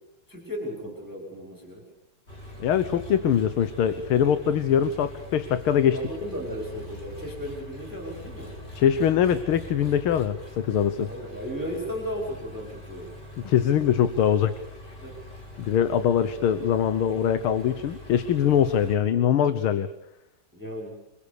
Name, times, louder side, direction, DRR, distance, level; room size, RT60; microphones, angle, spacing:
voice 1, 0.3-1.8 5.9-8.6 11.0-13.1 15.0-15.2 20.5-21.0, equal, 5° right, 0 dB, 5.2 m, -35 dB
Engine, 2.3-19.0, left 1 dB, 50° left, 7.1 m, -43 dB
voice 2, 2.6-6.0 8.8-11.1 13.5-14.5 15.6-19.9, left 9 dB, 80° left, 11 dB, 2.0 m, -23 dB
27.0 x 22.0 x 6.9 m, 0.82 s
omnidirectional pair, 2.3 m